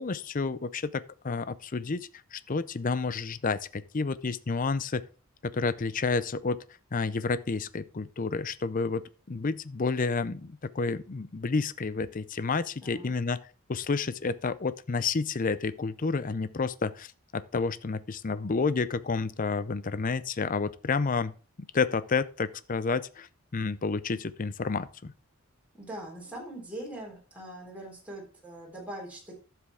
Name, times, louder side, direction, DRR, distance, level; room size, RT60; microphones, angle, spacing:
voice 1, 0.0-5.0 5.4-6.6 6.9-13.4 13.7-21.3 21.6-25.1, left 4 dB, 40° left, 0.5 m, -30 dB
voice 2, 12.8-13.1 25.7-29.3, right 1 dB, 5° right, 3.8 m, -42 dB
11.5 x 7.6 x 3.6 m
head